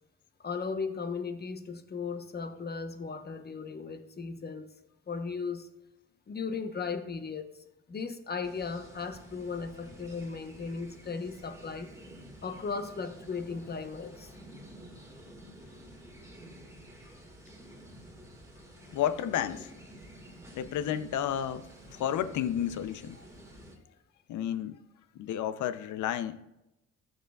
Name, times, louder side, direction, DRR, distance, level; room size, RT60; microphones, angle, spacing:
voice 1, 0.4-4.7 5.1-5.7 6.3-7.6 7.9-11.9 12.4-14.4 23.2-23.3, left 5 dB, 35° left, 1.0 m, -36 dB
sound 1, 8.4-23.8, right 1 dB, 10° right, 1.8 m, -50 dB
voice 2, 18.9-19.7 20.5-23.2 24.3-24.8 25.2-26.4, left 10 dB, 75° left, 0.6 m, -31 dB
14.0 x 6.3 x 2.4 m
cardioid pair, 90°, 30 cm